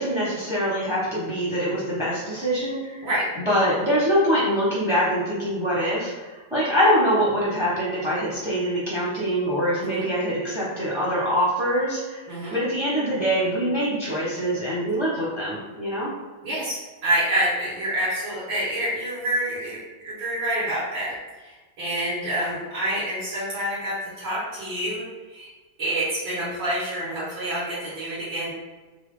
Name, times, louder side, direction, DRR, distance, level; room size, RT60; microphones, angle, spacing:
voice 1, 0.0-3.1 3.4-12.2 12.5-16.1, equal, ahead, -7 dB, 0.7 m, -24 dB
voice 2, 12.3-12.6 16.4-19.8 20.0-21.1 21.4-25.0 25.3-25.5 25.8-28.5, right 1 dB, 80° right, -11 dB, 2.3 m, -27 dB
5.8 x 2.2 x 3.8 m, 1.3 s
omnidirectional pair, 2.1 m